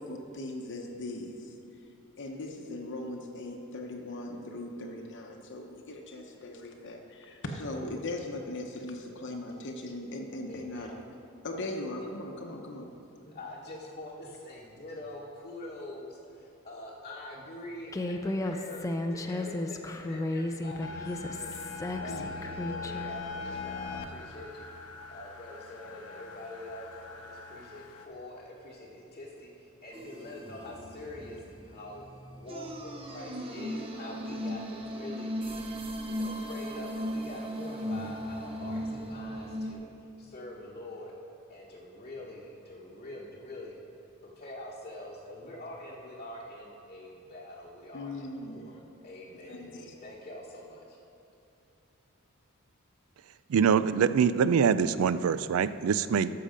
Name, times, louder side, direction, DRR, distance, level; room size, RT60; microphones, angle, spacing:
voice 1, 0.0-1.5 2.2-11.0 11.4-12.9 22.1-22.3 34.3-34.4 47.9-48.7 49.5-49.8, left 2 dB, 55° left, 2 dB, 0.9 m, -39 dB
voice 2, 10.5-10.9 11.6-11.7 13.2-21.5 21.8-24.7 25.1-32.0 32.3-35.7 36.1-39.9 40.2-41.1 41.5-43.7 44.2-51.0, left 1 dB, 35° left, -5 dB, 1.1 m, -45 dB
Human voice, 17.9-23.1, left 1 dB, 15° left, 0.4 m, -34 dB
sound 1, 20.8-28.0, left 4 dB, 85° left, 0.9 m, -41 dB
sound 2, 29.9-39.7, equal, 25° right, 0.8 m, -37 dB
voice 3, 53.5-56.3, right 7 dB, 70° right, 14 dB, 0.3 m, -24 dB
12.5 x 6.7 x 5.1 m, 2.7 s
head